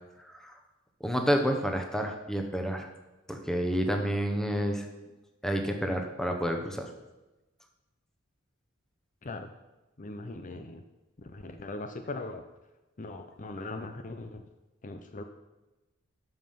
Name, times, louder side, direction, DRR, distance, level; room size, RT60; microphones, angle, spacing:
voice 1, 1.0-2.9 3.3-4.9 5.4-6.9, equal, ahead, 4 dB, 1.0 m, -29 dB
voice 2, 10.0-10.8 11.2-12.4 13.0-14.4 14.8-15.2, left 2 dB, 40° left, 7 dB, 0.6 m, -40 dB
12.5 x 5.6 x 5.7 m, 1.1 s
head